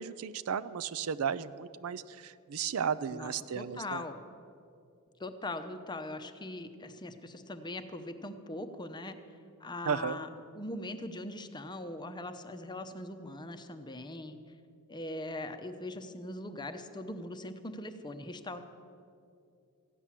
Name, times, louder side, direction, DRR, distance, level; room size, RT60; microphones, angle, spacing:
voice 1, 0.0-4.0 9.9-10.2, right 7 dB, 70° right, 14 dB, 0.4 m, -34 dB
voice 2, 3.1-4.2 5.2-9.2 9.6-10.3 10.5-14.4 14.9-18.6, left 1 dB, 20° left, 8 dB, 0.7 m, -41 dB
15.0 x 10.0 x 7.3 m, 2.5 s
head